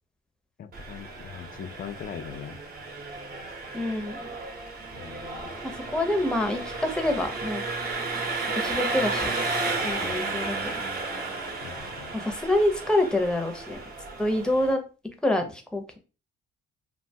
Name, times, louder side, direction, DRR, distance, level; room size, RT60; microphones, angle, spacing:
voice 1, 0.6-2.6 4.9-5.5 10.0-10.2 11.6-12.1, left 8 dB, 45° left, 11 dB, 0.4 m, -41 dB
Engine, 0.7-14.7, right 3 dB, 45° right, 0.8 m, -33 dB
voice 2, 3.7-4.2 5.6-7.6 8.5-9.3 9.8-10.7 12.1-13.8 14.2-14.8 15.2-16.0, left 1 dB, 5° left, 3 dB, 0.6 m, -26 dB
2.7 x 2.2 x 2.7 m, 0.34 s
cardioid pair, 90°, 20 cm